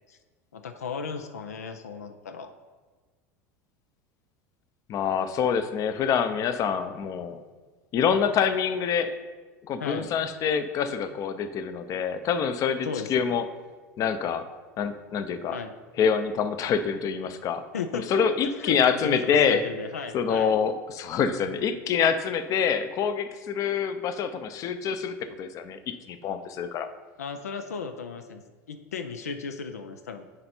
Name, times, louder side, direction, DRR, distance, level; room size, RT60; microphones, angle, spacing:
voice 1, 0.5-2.5 9.8-10.1 12.8-13.3 15.5-15.7 17.7-20.6 27.2-28.4 28.7-30.3, left 5 dB, 90° left, 7 dB, 0.4 m, -35 dB
voice 2, 4.9-7.4 7.9-9.1 9.7-13.4 14.0-14.4 14.8-15.6 16.0-17.6 17.9-19.7 20.1-26.9, left 7 dB, 45° left, 10 dB, 0.6 m, -26 dB
9.8 x 3.3 x 4.3 m, 1.3 s
hypercardioid pair, 85°, 8 cm